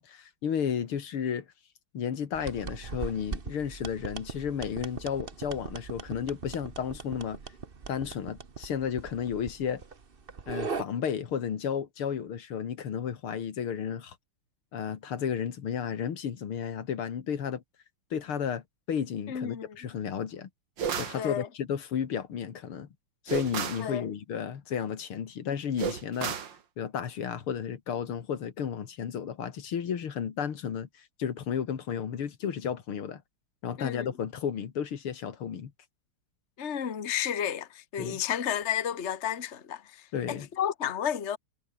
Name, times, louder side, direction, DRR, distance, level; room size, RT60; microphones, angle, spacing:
voice 1, 0.0-1.5 1.9-7.4 7.9-9.8 10.5-14.2 14.7-17.6 18.1-20.5 21.0-22.9 23.3-26.4 26.8-30.9 31.2-33.2 33.6-35.7 38.0-38.2 40.1-40.5, left 8 dB, 75° left, 2.7 m, -33 dB
sound 1, 2.3-10.8, right 5 dB, 30° right, 1.3 m, -40 dB
voice 2, 19.3-19.7 21.1-21.5 23.8-24.1 33.8-34.1 36.6-41.4, left 9 dB, 35° left, 1.6 m, -32 dB
sound 2, 20.8-21.2 23.3-23.9 25.8-26.6, right 7 dB, 60° right, 2.4 m, -32 dB
omnidirectional pair, 2.4 m